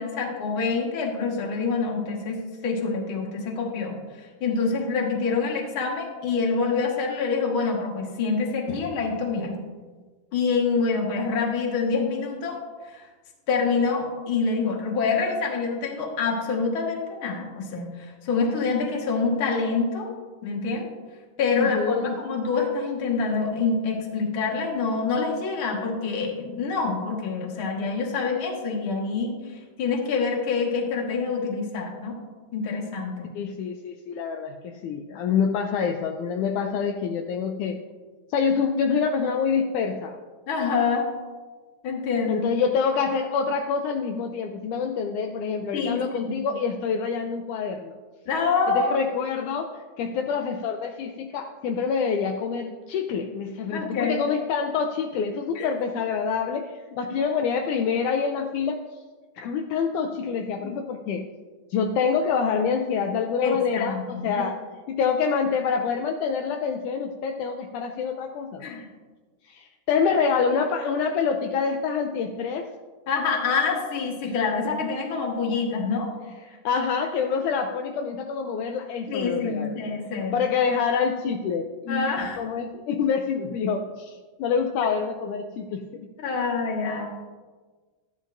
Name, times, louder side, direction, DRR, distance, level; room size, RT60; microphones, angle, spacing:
voice 1, 0.0-9.6 10.3-12.6 12.9-13.1 13.5-20.1 20.4-20.9 21.4-29.3 29.8-32.1 32.5-33.3 40.5-41.1 41.8-42.5 45.7-46.4 48.3-49.0 53.7-54.2 55.6-55.7 60.6-60.8 63.4-64.4 68.6-68.9 73.1-76.1 79.1-80.4 81.9-82.4 86.2-87.1, left 4 dB, 45° left, -1 dB, 2.0 m, -26 dB
voice 2, 21.5-22.1 33.4-37.8 38.3-40.2 42.3-47.9 48.7-58.8 59.4-61.3 61.7-64.6 64.9-68.6 69.4-72.7 74.2-74.3 76.5-79.8 80.3-85.8, left 6 dB, 80° left, 4 dB, 2.0 m, -26 dB
13.0 x 10.0 x 2.6 m, 1.4 s
omnidirectional pair, 3.7 m